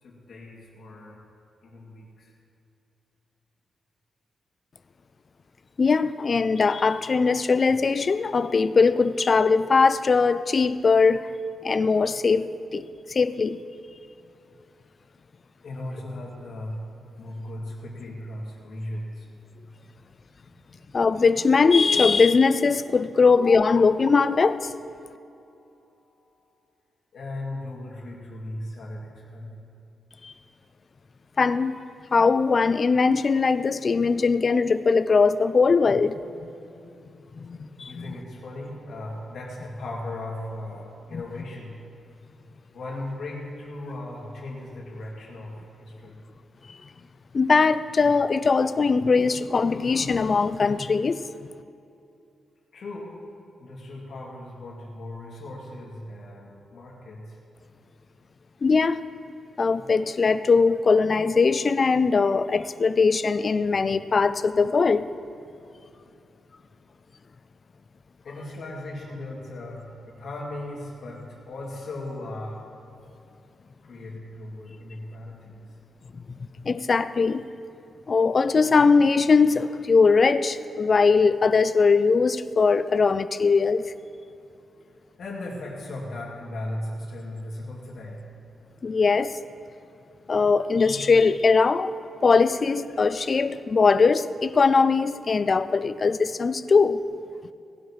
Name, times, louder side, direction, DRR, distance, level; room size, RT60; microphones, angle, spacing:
voice 1, 0.0-1.2 1.6-2.3 15.6-16.8 17.2-19.3 20.7-20.8 27.1-29.6 37.9-41.8 42.7-46.2 52.7-53.2 53.6-57.4 68.2-72.6 73.8-75.6 85.2-88.2, left 1 dB, 65° left, -3 dB, 2.5 m, -37 dB
voice 2, 5.8-11.3 11.6-13.6 20.9-24.7 30.2-30.3 31.4-31.8 32.1-36.2 37.4-38.1 41.1-41.2 47.3-51.2 58.6-59.0 59.6-65.1 76.6-77.4 78.1-83.9 88.8-89.4 90.3-91.9 92.2-97.0, left 4 dB, 40° left, 13 dB, 0.4 m, -21 dB
18.5 x 11.5 x 3.2 m, 2.7 s
wide cardioid pair, 130°, 0 cm